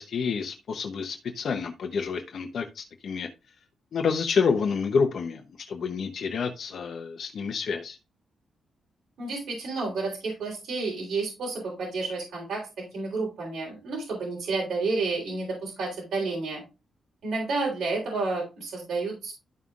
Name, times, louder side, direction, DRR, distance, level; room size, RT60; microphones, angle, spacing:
voice 1, 0.0-3.3 3.9-8.0, left 5 dB, 55° left, 0.8 m, -28 dB
voice 2, 9.2-12.7 12.9-16.6 17.2-19.3, right 3 dB, 70° right, 3.5 m, -30 dB
12.5 x 5.5 x 2.5 m
wide cardioid pair, 135°, 0 cm